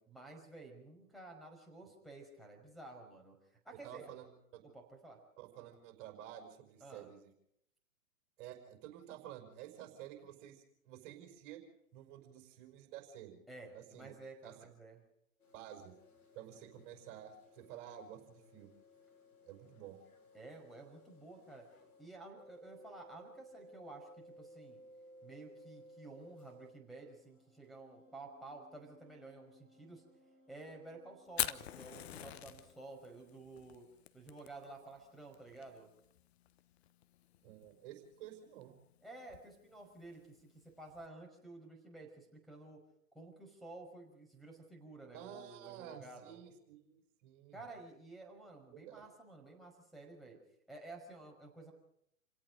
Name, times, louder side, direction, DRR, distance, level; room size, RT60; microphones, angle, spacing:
voice 1, 0.1-3.4 3.6-4.1 4.7-5.2 6.8-7.1 13.5-15.0 20.3-21.7 22.0-24.8 25.2-30.0 30.5-33.8 34.1-35.9 39.0-40.4 40.8-42.8 43.1-46.4 47.5-50.4 50.7-51.7, right 2 dB, ahead, 2 dB, 5.4 m, -52 dB
voice 2, 3.8-4.6 5.4-7.3 8.4-11.6 11.9-13.4 13.7-14.2 14.4-14.5 15.5-15.9 16.3-18.7 19.4-20.0 37.4-38.8 45.1-47.6 48.7-49.0, right 11 dB, 35° right, 4 dB, 5.4 m, -51 dB
sound 1, 15.4-22.1 22.3-26.7 27.0-33.2, equal, 75° left, 6.2 m, -61 dB
Fire, 31.3-41.1, left 12 dB, 45° left, 1.1 m, -45 dB
29.0 x 17.5 x 5.3 m, 0.73 s
figure-of-eight pair, 115°, 44 cm